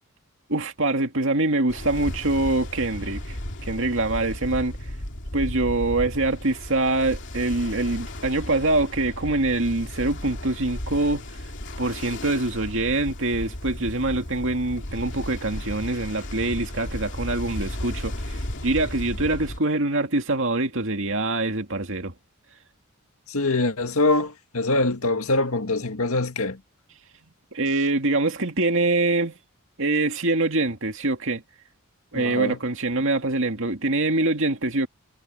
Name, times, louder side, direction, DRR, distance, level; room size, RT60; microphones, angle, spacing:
voice 1, 0.5-3.4 3.6-4.8 5.3-11.2 11.8-22.1 27.5-29.3 29.8-31.4 32.1-34.9, right 2 dB, 60° right, 2.4 m, -24 dB
Ocean, 1.7-19.6, left 1 dB, 55° left, 2.9 m, -34 dB
voice 2, 23.3-26.6 32.1-32.6, left 2 dB, 80° left, 2.1 m, -24 dB
head